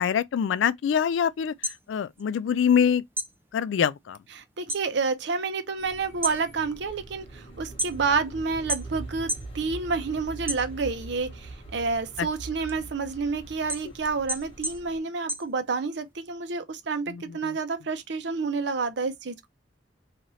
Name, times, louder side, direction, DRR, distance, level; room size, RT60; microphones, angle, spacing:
voice 1, 0.0-1.5 1.9-3.0 3.5-4.2 12.2-12.3 17.1-17.6, left 7 dB, 85° left, 0.3 m, -24 dB
sound 1, 1.4-2.8 3.1-4.9 5.2-5.7 6.1-8.3 8.7-9.5 9.9-11.1 11.6-16.1, right 1 dB, 10° right, 0.4 m, -34 dB
voice 2, 4.4-19.5, right 4 dB, 65° right, 0.6 m, -29 dB
sound 2, 5.8-15.0, right 2 dB, 30° left, 1.3 m, -43 dB
3.0 x 2.5 x 4.0 m
head